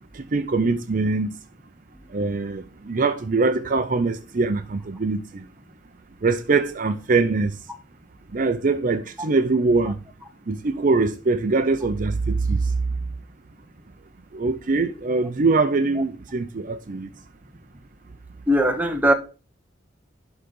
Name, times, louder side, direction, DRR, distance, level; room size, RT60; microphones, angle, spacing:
voice 1, 0.1-1.4 2.1-5.5 6.2-7.7 8.3-10.0 10.5-12.8 14.3-17.1, right 3 dB, 45° right, 0.5 m, -23 dB
voice 2, 18.5-19.1, equal, 10° right, 1.0 m, -19 dB
11.5 x 3.9 x 5.3 m
head